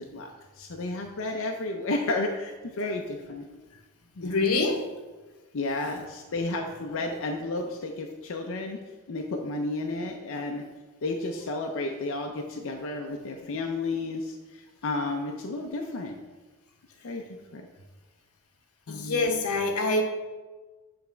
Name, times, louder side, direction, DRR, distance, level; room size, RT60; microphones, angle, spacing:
voice 1, 0.0-3.5 4.2-4.4 5.5-8.8 9.1-10.6 11.0-16.2 17.0-17.7 18.9-19.3, left 2 dB, 65° left, 2 dB, 0.5 m, -32 dB
voice 2, 4.2-4.9 18.9-20.0, left 3 dB, 90° left, 4 dB, 0.9 m, -25 dB
7.4 x 3.4 x 4.5 m, 1.3 s
head